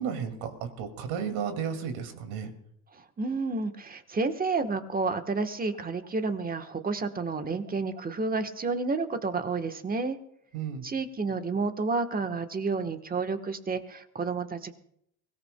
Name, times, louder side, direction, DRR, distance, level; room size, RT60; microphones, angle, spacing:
voice 1, 0.0-2.5 10.5-10.8, right 7 dB, 75° right, 6 dB, 2.4 m, -33 dB
voice 2, 2.9-10.2 10.8-14.7, right 4 dB, 20° right, 8 dB, 1.2 m, -30 dB
23.0 x 17.0 x 2.2 m, 0.72 s
supercardioid pair, 105°, 46 cm